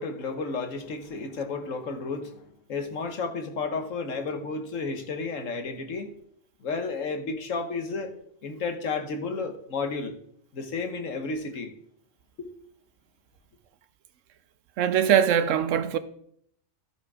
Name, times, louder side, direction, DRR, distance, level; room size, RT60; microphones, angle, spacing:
voice 1, 0.0-2.4 2.7-6.1 6.6-8.1 8.4-10.1 10.5-11.7 12.4-12.5, left 4 dB, 75° left, 1.5 m, -32 dB
voice 2, 14.8-16.0, right 9 dB, 75° right, 1.0 m, -22 dB
13.5 x 4.7 x 4.8 m
omnidirectional pair, 1.3 m